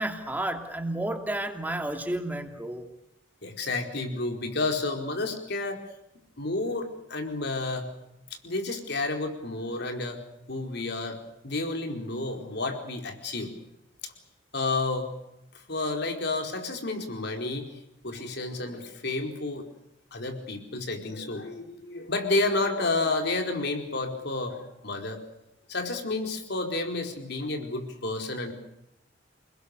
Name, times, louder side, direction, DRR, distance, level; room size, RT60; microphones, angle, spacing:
voice 1, 0.0-2.9, right 1 dB, 10° right, 5 dB, 2.8 m, -31 dB
voice 2, 3.4-5.8 6.4-7.9 8.4-10.2 10.5-11.2 11.4-13.5 14.0-14.1 14.5-15.1 15.5-17.7 18.0-19.6 20.1-25.2 25.7-28.5, left 2 dB, 65° left, 4 dB, 4.7 m, -30 dB
29.0 x 20.5 x 6.8 m, 0.85 s
head